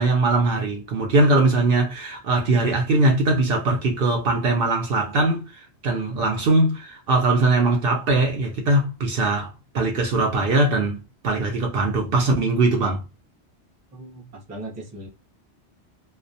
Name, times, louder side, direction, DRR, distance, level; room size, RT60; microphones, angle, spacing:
voice 1, 0.0-13.0, right 2 dB, 60° right, 0.7 m, -21 dB
voice 2, 13.9-15.1, right 2 dB, 20° right, 0.5 m, -38 dB
2.3 x 2.1 x 2.6 m
omnidirectional pair, 1.2 m